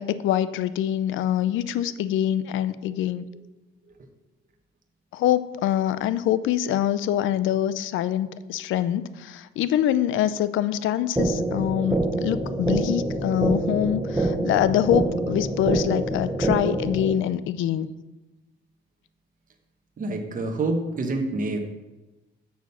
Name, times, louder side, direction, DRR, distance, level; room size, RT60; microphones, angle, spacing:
voice 1, 0.0-3.3 5.1-17.9, left 11 dB, 80° left, 15 dB, 0.5 m, -25 dB
sound 1, 11.2-17.2, right 2 dB, 10° right, 0.9 m, -26 dB
voice 2, 20.0-21.6, right 2 dB, 45° right, 4 dB, 1.1 m, -27 dB
7.2 x 6.2 x 5.5 m, 1.1 s
cardioid pair, 90°, 20 cm